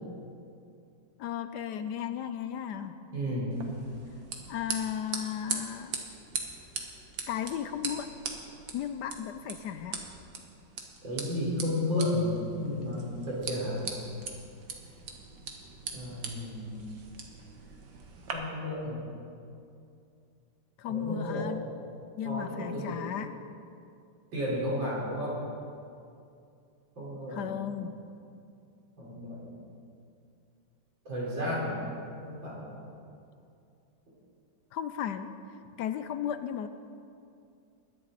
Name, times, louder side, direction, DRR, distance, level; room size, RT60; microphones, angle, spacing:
voice 1, 1.2-3.0 4.5-5.9 7.3-8.1 8.7-10.0 20.8-21.6 22.2-23.3 27.3-27.9 34.7-35.3 35.8-36.7, left 9 dB, 70° left, 10 dB, 1.1 m, -35 dB
voice 2, 3.1-3.6 11.0-13.9 15.9-16.9 18.3-19.1 20.9-21.5 22.2-23.0 24.3-25.4 27.0-27.6 29.0-29.5 31.1-31.8 32.2-32.8, left 1 dB, 80° right, -7 dB, 5.3 m, -33 dB
sound 1, 3.5-18.3, right 5 dB, 65° right, 1.9 m, -41 dB
21.5 x 10.5 x 4.2 m, 2.5 s
omnidirectional pair, 2.0 m